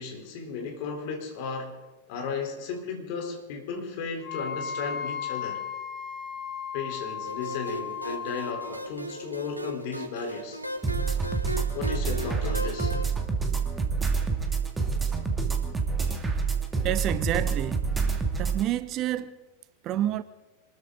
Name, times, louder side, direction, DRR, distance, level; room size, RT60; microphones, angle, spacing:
voice 1, 0.0-1.8 2.1-5.6 6.7-10.6 11.7-13.0, left 5 dB, 50° left, 3.8 m, -35 dB
Wind instrument woodwind instrument, 4.2-8.8, left 7 dB, 30° left, 3.9 m, -35 dB
sound 1, 7.2-13.1, equal, 85° right, 1.2 m, -37 dB
sound 2, 10.8-18.6, right 5 dB, 10° right, 2.2 m, -27 dB
voice 2, 16.8-18.1 18.4-19.4 19.8-20.2, right 12 dB, 35° right, 0.7 m, -29 dB
26.5 x 13.5 x 3.9 m
figure-of-eight pair, 90°, 0 cm